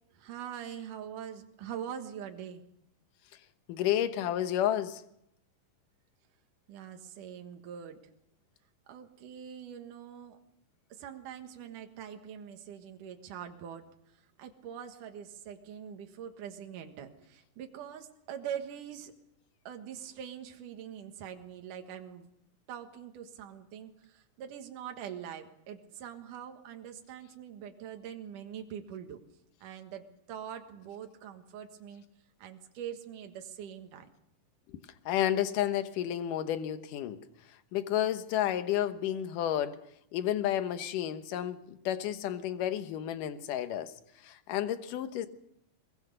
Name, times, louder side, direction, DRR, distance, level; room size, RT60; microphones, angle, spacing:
voice 1, 0.1-2.6 6.7-8.0 8.9-10.4 10.9-13.8 14.4-19.1 19.7-22.3 22.7-29.2 29.6-32.0 32.4-34.1, right 9 dB, 70° right, 3.0 m, -43 dB
voice 2, 3.7-5.0 35.1-37.2 37.7-39.8 40.1-43.9 44.2-45.3, left 11 dB, 75° left, 2.7 m, -31 dB
22.5 x 22.0 x 6.7 m
omnidirectional pair, 3.9 m